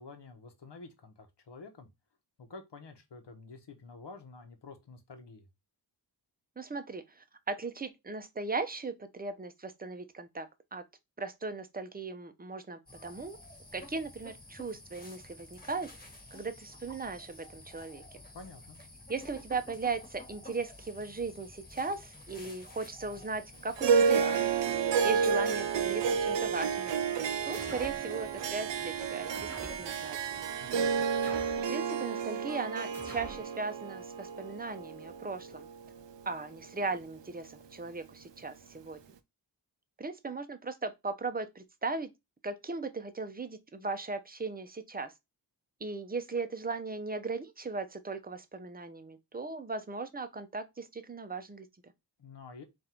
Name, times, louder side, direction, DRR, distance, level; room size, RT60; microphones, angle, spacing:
voice 1, 0.0-1.9 2.4-5.5 18.3-18.8 30.6-31.1 52.2-52.6, left 3 dB, 75° left, 1.0 m, -49 dB
voice 2, 6.6-10.8 11.2-13.4 13.7-15.9 16.3-18.0 19.1-26.9 27.4-29.5 29.8-30.4 31.7-35.7 36.3-39.0 40.0-42.1 42.4-45.1 45.8-51.7, right 3 dB, 20° right, 0.6 m, -38 dB
sound 1, 12.9-31.3, left 1 dB, 20° left, 1.4 m, -51 dB
Harp, 23.8-36.3, right 6 dB, 85° right, 0.6 m, -31 dB
sound 2, 27.5-28.1 29.3-29.9 31.2-31.7 32.9-33.5, right 1 dB, 5° left, 1.0 m, -46 dB
3.7 x 2.6 x 4.3 m
wide cardioid pair, 75°, 42 cm